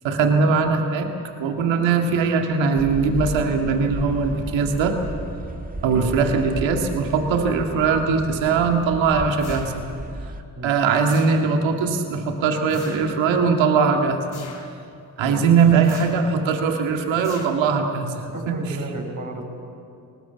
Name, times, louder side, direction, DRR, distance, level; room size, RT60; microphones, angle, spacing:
voice 1, 0.0-1.1 1.4-5.0 5.8-9.7 10.6-14.2 14.6-14.7 15.2-18.6, right 5 dB, 75° right, 3 dB, 2.2 m, -20 dB
sound 1, 2.8-10.4, right 2 dB, 20° right, 1.7 m, -34 dB
sound 2, 9.4-10.1 11.1-11.7 12.7-13.2 14.3-14.8 15.8-16.4 17.2-17.9, left 5 dB, 65° left, 3.3 m, -44 dB
voice 2, 15.2-15.5 18.3-19.5, right 2 dB, 40° right, 0 dB, 6.5 m, -33 dB
23.5 x 20.0 x 7.4 m, 2.5 s
hypercardioid pair, 40°, 46 cm